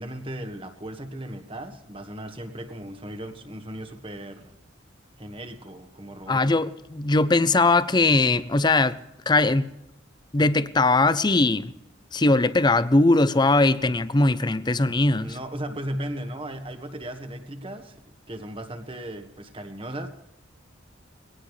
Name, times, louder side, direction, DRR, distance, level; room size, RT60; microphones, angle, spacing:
voice 1, 0.0-4.5 5.2-6.5 15.2-18.0 18.3-20.1, right 1 dB, 30° right, 1.6 m, -36 dB
voice 2, 6.3-9.0 9.3-9.7 10.3-11.7 12.1-15.4, left 2 dB, 20° left, 0.6 m, -20 dB
22.0 x 17.5 x 3.3 m
head